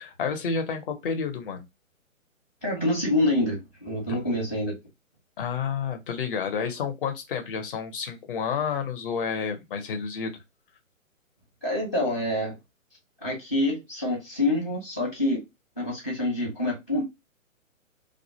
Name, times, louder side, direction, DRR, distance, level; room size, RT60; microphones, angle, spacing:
voice 1, 0.0-1.6 4.1-4.2 5.4-10.4, left 6 dB, 40° left, 0.7 m, -30 dB
voice 2, 2.6-4.8 11.6-12.6 13.2-15.5 15.8-17.0, left 1 dB, 10° left, 0.4 m, -26 dB
2.4 x 2.1 x 2.7 m
hypercardioid pair, 140°, 40 cm